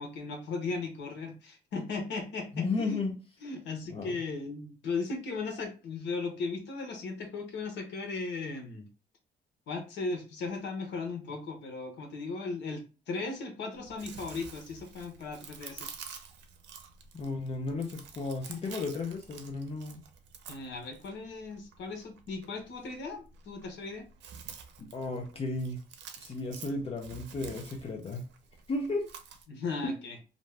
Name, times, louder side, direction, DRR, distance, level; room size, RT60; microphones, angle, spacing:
voice 1, 0.0-3.0 3.4-8.9 9.7-16.1 20.5-24.1 29.5-30.2, left 4 dB, 80° left, 0.9 m, -37 dB
voice 2, 2.5-3.1 3.9-4.2 17.1-20.0 24.8-25.8 26.2-28.3 28.7-29.1 29.8-30.0, left 3 dB, 35° left, 0.5 m, -34 dB
Chewing mastication, 13.7-29.4, right 6 dB, 90° right, 0.5 m, -49 dB
2.6 x 2.2 x 3.2 m
cardioid pair, 150°, 18 cm